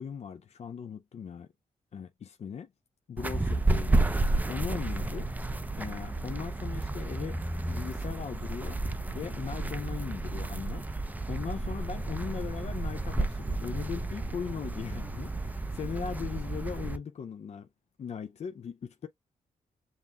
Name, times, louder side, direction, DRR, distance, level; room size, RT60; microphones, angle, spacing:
voice 1, 0.0-1.5 1.9-2.7 3.1-4.1 4.5-5.3 5.8-7.4 7.7-10.9 11.3-17.7 18.0-19.1, left 7 dB, 45° left, 0.4 m, -39 dB
sound 1, 3.2-17.0, right 2 dB, 10° right, 0.4 m, -31 dB
7.1 x 2.4 x 2.2 m
cardioid pair, 60°, 15 cm